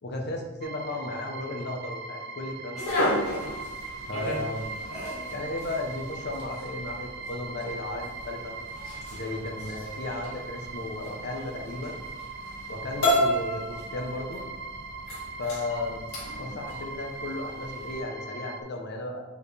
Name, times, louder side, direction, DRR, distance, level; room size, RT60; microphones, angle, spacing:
voice 1, 0.0-3.1 4.1-4.7 5.3-8.5 9.1-12.0 12.7-14.4 15.4-16.0 16.3-19.2, left 2 dB, 50° left, 2 dB, 0.9 m, -35 dB
sound 1, 0.6-18.6, right 3 dB, 50° right, 0.6 m, -40 dB
sound 2, 2.7-18.0, equal, 75° left, 1.8 m, -34 dB
6.7 x 4.8 x 3.3 m, 1.1 s
head